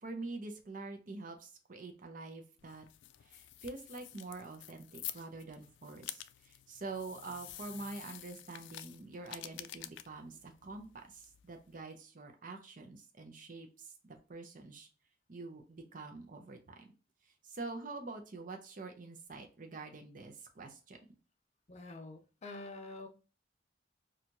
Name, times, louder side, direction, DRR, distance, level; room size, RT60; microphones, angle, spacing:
voice 1, 0.0-2.8 3.2-14.9 15.3-16.9 17.4-21.0, right 3 dB, 50° right, 0.6 m, -46 dB
sound 1, 2.6-11.8, left 13 dB, 85° left, 0.3 m, -49 dB
voice 2, 21.7-23.1, left 2 dB, 40° left, 0.6 m, -46 dB
4.4 x 2.4 x 2.6 m
head